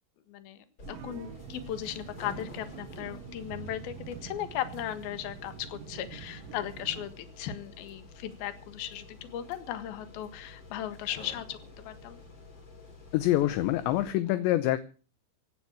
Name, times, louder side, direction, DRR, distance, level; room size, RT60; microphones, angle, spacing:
voice 1, 0.3-12.2, left 11 dB, 60° left, 11 dB, 2.8 m, -37 dB
sound 1, 0.8-14.1, left 3 dB, 25° left, 4.0 m, -50 dB
sound 2, 0.8-7.1, right 9 dB, 80° right, 2.0 m, -46 dB
voice 2, 13.1-14.8, left 15 dB, 80° left, 13 dB, 2.7 m, -25 dB
17.0 x 8.9 x 7.4 m, 0.37 s
omnidirectional pair, 5.9 m